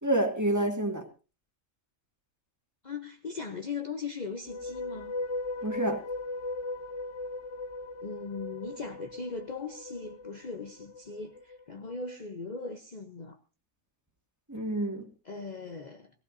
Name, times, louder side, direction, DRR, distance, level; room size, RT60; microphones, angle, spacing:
voice 1, 0.0-1.0 5.6-6.0 14.5-15.1, right 1 dB, 15° right, 2.2 m, -28 dB
voice 2, 2.8-5.1 8.0-13.4 15.2-16.1, left 4 dB, 40° left, 0.9 m, -39 dB
sound 1, 4.3-11.6, left 2 dB, 65° left, 1.3 m, -38 dB
20.0 x 15.5 x 2.7 m
omnidirectional pair, 1.3 m